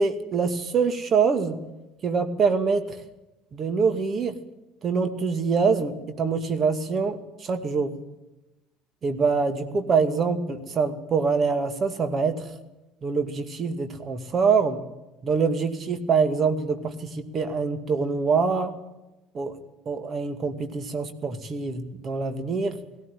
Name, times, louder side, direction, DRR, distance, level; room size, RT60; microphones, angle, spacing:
voice 1, 0.0-1.6 2.0-3.0 3.5-4.4 4.8-7.9 9.0-12.4 13.0-14.8 15.2-18.7 19.3-19.5 19.9-22.7, right 5 dB, 40° right, 8 dB, 2.3 m, -24 dB
17.5 x 16.5 x 9.3 m, 1.0 s
figure-of-eight pair, 60°, 0 cm